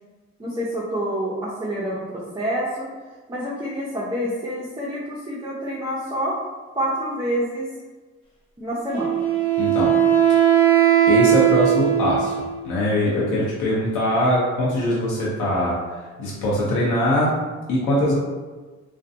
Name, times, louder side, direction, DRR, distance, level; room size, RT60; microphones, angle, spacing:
voice 1, 0.4-2.9 3.3-6.4 6.7-7.7 8.6-9.2, equal, 15° right, -8 dB, 0.6 m, -27 dB
Wind instrument woodwind instrument, 8.9-12.5, right 11 dB, 20° left, 1.0 m, -18 dB
voice 2, 9.6-10.0 11.1-17.3 17.7-18.1, left 1 dB, 80° left, -5 dB, 0.8 m, -22 dB
2.5 x 2.2 x 2.6 m, 1.3 s
cardioid pair, 90°, 30 cm